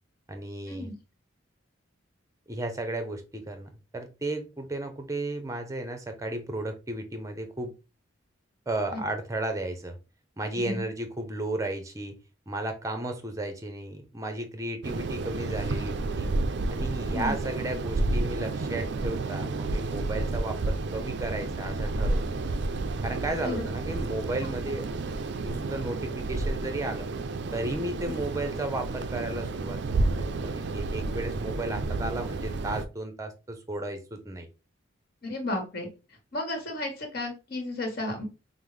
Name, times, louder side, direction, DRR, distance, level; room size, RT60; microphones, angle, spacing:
voice 1, 0.3-0.9 2.5-7.7 8.7-10.0 10.4-12.2 12.5-16.3 16.7-22.3 23.0-24.9 25.4-27.1 27.5-34.5, right 1 dB, 15° right, 0.6 m, -34 dB
voice 2, 10.6-10.9 17.1-17.3 23.4-23.6 35.2-35.9 36.3-38.3, left 2 dB, 50° left, 1.4 m, -33 dB
sound 1, 14.8-32.8, right 2 dB, 60° right, 0.4 m, -31 dB
5.3 x 2.1 x 3.2 m
head